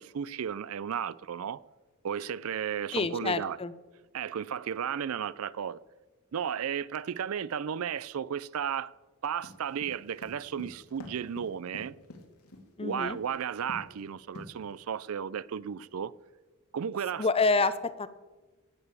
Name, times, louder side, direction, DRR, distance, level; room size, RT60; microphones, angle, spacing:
voice 1, 0.0-1.6 2.0-3.6 4.1-5.8 6.3-8.9 9.2-12.0 12.8-16.1 16.7-17.3, right 8 dB, 70° right, 0.4 m, -34 dB
voice 2, 2.9-3.7 12.8-13.2 17.2-18.1, left 3 dB, 25° left, 0.6 m, -27 dB
sound 1, 9.4-12.7 13.1-13.4 13.7-14.0 14.4-14.9, left 2 dB, 80° left, 2.1 m, -46 dB
17.5 x 6.8 x 8.2 m
head